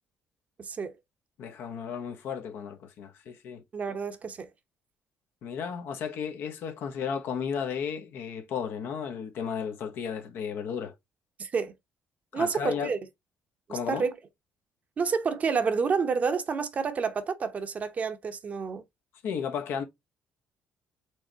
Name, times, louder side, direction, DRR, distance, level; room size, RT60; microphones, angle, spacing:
voice 1, 0.6-0.9 3.7-4.5 11.4-11.7 12.3-13.0 13.7-14.1 15.0-18.8, right 5 dB, 40° right, 0.9 m, -29 dB
voice 2, 1.4-3.6 5.4-10.9 12.3-12.9 13.7-14.1 19.2-19.9, left 7 dB, 70° left, 1.0 m, -34 dB
4.7 x 3.3 x 2.8 m
cardioid pair, 105°, 4 cm